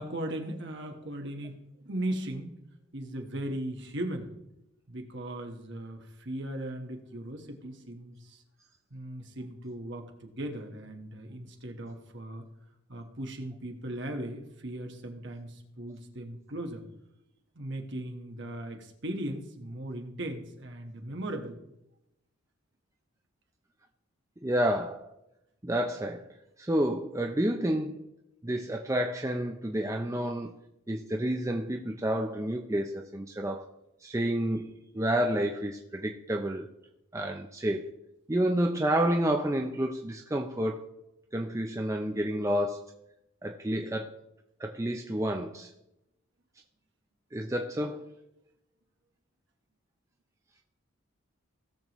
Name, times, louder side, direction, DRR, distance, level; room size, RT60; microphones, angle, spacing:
voice 1, 0.0-2.5 2.9-4.3 4.9-8.4 8.9-12.4 12.9-16.8 17.5-21.6, right 1 dB, 55° right, 3 dB, 1.4 m, -38 dB
voice 2, 24.4-25.1 25.6-26.2 26.6-28.1 28.4-30.5 30.9-33.7 34.0-36.7 37.1-37.8 38.3-40.9 41.3-42.8 43.4-44.2 44.6-45.7 47.3-48.1, right 1 dB, 15° right, 2 dB, 0.5 m, -29 dB
17.5 x 6.8 x 3.1 m, 0.87 s
head